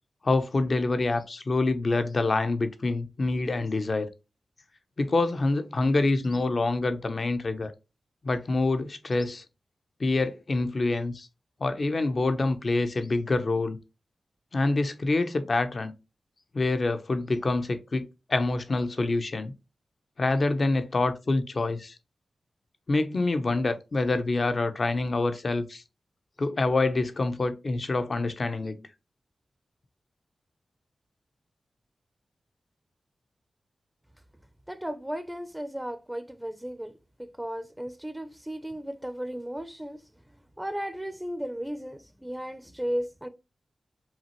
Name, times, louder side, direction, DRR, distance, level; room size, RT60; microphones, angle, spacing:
voice 1, 0.2-4.1 5.0-7.7 8.2-9.4 10.0-11.3 11.6-13.8 14.5-15.9 16.5-19.5 20.2-21.9 22.9-25.8 26.4-28.9, left 2 dB, 55° left, 0.7 m, -26 dB
voice 2, 34.7-36.9 37.4-40.0 40.6-43.3, equal, 10° right, 0.6 m, -35 dB
5.7 x 2.5 x 3.0 m
cardioid pair, 45°, 0 cm